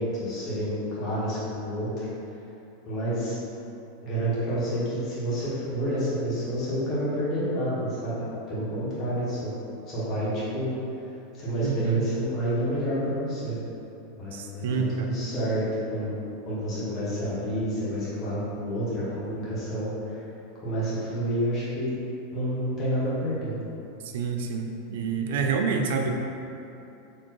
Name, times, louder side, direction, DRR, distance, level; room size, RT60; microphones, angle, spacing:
voice 1, 0.0-2.1 2.8-3.3 4.0-9.5 9.9-10.7 11.3-13.6 14.2-16.2 16.4-20.2 20.6-21.9 22.3-23.7, equal, 30° left, -10 dB, 1.3 m, -29 dB
voice 2, 11.6-12.0 14.3-15.1 24.1-26.1, right 5 dB, 70° right, 3 dB, 0.4 m, -28 dB
4.1 x 2.9 x 2.9 m, 2.8 s
supercardioid pair, 155°, 0 cm